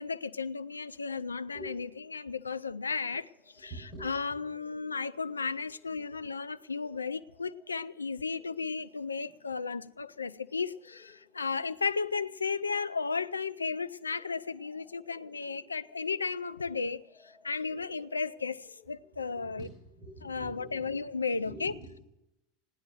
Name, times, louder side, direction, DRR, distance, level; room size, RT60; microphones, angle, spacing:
voice 1, 0.0-3.3 3.6-3.7 4.0-19.7 20.2-21.7, left 4 dB, 85° left, 0.5 m, -34 dB
sound 1, 1.3-18.9, left 8 dB, 30° left, 2.6 m, -63 dB
voice 2, 3.6-4.4 9.2-9.5 17.6-17.8 19.0-22.0, right 1 dB, 40° right, 7.9 m, -47 dB
17.5 x 10.5 x 6.3 m
figure-of-eight pair, 80°, 0 cm